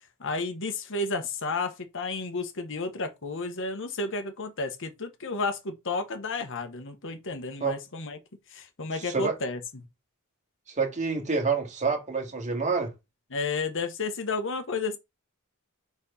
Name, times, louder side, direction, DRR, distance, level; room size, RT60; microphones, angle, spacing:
voice 1, 0.2-8.2 8.5-9.6 13.3-15.0, left 3 dB, 60° left, 1.3 m, -32 dB
voice 2, 9.0-9.3 10.8-12.9, right 4 dB, 35° right, 2.1 m, -27 dB
4.5 x 4.2 x 5.6 m
head